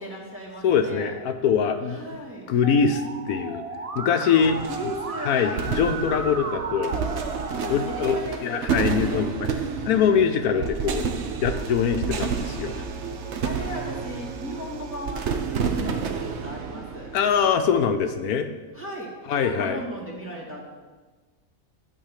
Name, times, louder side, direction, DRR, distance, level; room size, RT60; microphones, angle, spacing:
voice 1, 0.0-1.1 1.8-2.5 4.2-4.3 4.7-5.7 7.6-9.3 10.3-10.7 12.7-12.8 13.4-15.3 15.6-17.1 18.7-20.6, equal, 10° right, -5 dB, 2.4 m, -36 dB
voice 2, 0.6-2.0 2.5-3.6 3.9-4.6 5.3-6.9 7.7-8.2 8.4-9.5 9.9-11.0 11.4-12.7 17.1-18.5 19.3-19.8, left 7 dB, 80° left, 7 dB, 1.1 m, -23 dB
Musical instrument, 2.6-8.2, right 3 dB, 35° right, 0.7 m, -34 dB
sound 1, 4.4-17.9, right 6 dB, 55° right, 1.0 m, -30 dB
11.5 x 4.8 x 7.5 m, 1.3 s
omnidirectional pair, 1.6 m